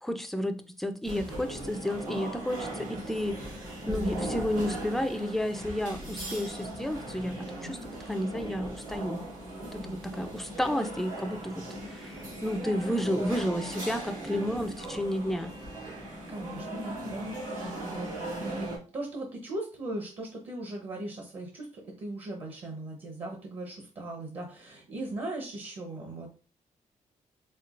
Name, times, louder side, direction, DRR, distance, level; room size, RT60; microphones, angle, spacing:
voice 1, 0.0-3.6 3.9-7.8 8.1-15.5, equal, ahead, 8 dB, 0.3 m, -32 dB
sound 1, 1.0-18.8, right 1 dB, 90° right, 2.1 m, -38 dB
voice 2, 16.3-26.3, right 2 dB, 50° right, 1 dB, 0.8 m, -39 dB
4.4 x 3.6 x 2.4 m, 0.37 s
wide cardioid pair, 160°, 13 cm